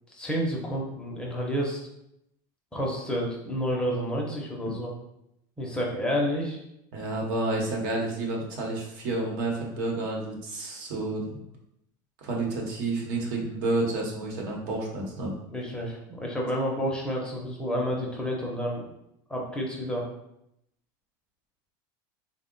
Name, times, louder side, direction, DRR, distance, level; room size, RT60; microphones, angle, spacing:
voice 1, 0.1-1.8 2.7-4.9 5.6-6.6 15.5-18.9 19.3-20.0, equal, 10° left, -2 dB, 0.6 m, -30 dB
voice 2, 6.9-11.4 12.2-15.3, right 2 dB, 70° right, -1 dB, 1.0 m, -30 dB
3.5 x 2.1 x 3.8 m, 0.81 s
supercardioid pair, 145°, 11 cm